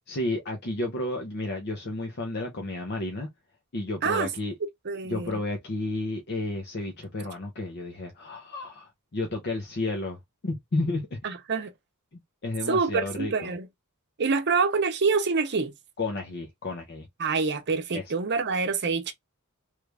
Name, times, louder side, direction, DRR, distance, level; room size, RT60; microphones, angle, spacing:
voice 1, 0.1-3.3 3.7-4.5 5.1-10.2 10.4-11.2 12.1-13.5 16.0-17.1 17.9-18.0, left 2 dB, 50° left, 0.7 m, -32 dB
voice 2, 4.8-5.3 11.2-11.7 12.7-13.7 14.2-15.7 17.2-19.1, right 4 dB, 50° right, 0.7 m, -26 dB
3.2 x 2.5 x 3.3 m
head